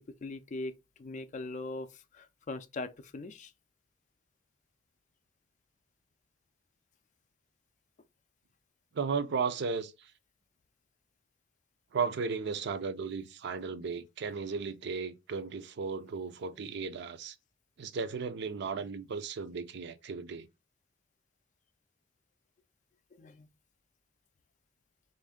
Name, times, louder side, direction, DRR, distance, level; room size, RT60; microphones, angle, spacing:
voice 1, 0.0-3.5 23.1-23.5, left 2 dB, 40° left, 0.4 m, -41 dB
voice 2, 8.9-10.1 11.9-17.4 17.8-20.5, right 5 dB, 60° right, 0.5 m, -35 dB
4.1 x 2.6 x 3.6 m
head